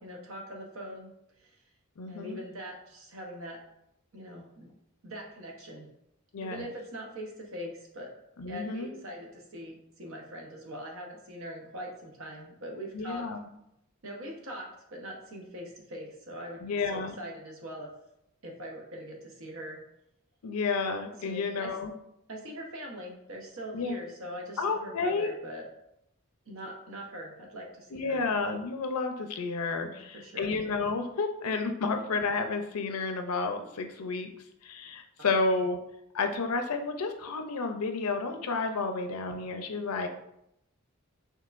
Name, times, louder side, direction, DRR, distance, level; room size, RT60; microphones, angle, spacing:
voice 1, 0.0-1.1 1.4-1.5 2.1-3.6 4.1-4.7 5.0-5.9 6.4-8.1 8.5-13.3 14.0-16.7 16.9-17.9 18.4-19.8 21.2-21.8 22.3-25.7 26.5-28.3 29.8-30.5 35.2-35.3, equal, 65° right, 0 dB, 1.0 m, -42 dB
voice 2, 2.0-2.4 6.3-6.7 8.4-8.9 12.9-13.4 16.6-17.2 20.4-21.9 23.7-24.0 24.6-25.3 27.9-34.3 34.6-35.8 36.1-40.1, left 4 dB, 90° left, 6 dB, 0.5 m, -31 dB
5.5 x 2.9 x 2.5 m, 0.80 s
head